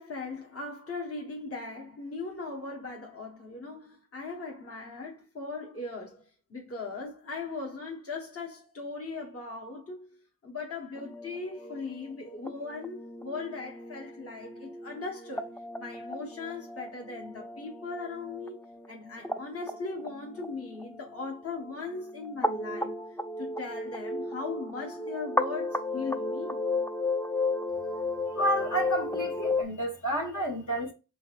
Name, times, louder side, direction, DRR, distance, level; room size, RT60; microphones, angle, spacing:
voice 1, 0.0-6.2 6.5-10.1 10.4-15.5 15.8-18.6 18.9-23.0 23.4-26.6, left 3 dB, 40° left, 1.0 m, -39 dB
sound 1, 11.0-29.6, left 2 dB, 5° left, 0.4 m, -34 dB
voice 2, 28.3-30.9, right 1 dB, 60° left, 1.5 m, -30 dB
4.0 x 3.4 x 2.4 m
cardioid pair, 45°, 34 cm